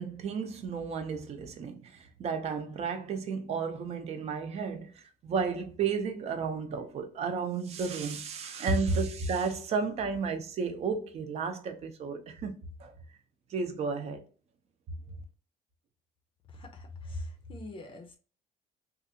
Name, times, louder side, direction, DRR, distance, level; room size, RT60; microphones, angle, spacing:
voice 1, 0.0-12.5 12.8-12.9 13.5-14.2, right 5 dB, 45° right, 0.7 m, -33 dB
voice 2, 16.5-18.2, left 1 dB, 35° left, 0.6 m, -42 dB
3.2 x 2.4 x 2.8 m
cardioid pair, 150°, 15 cm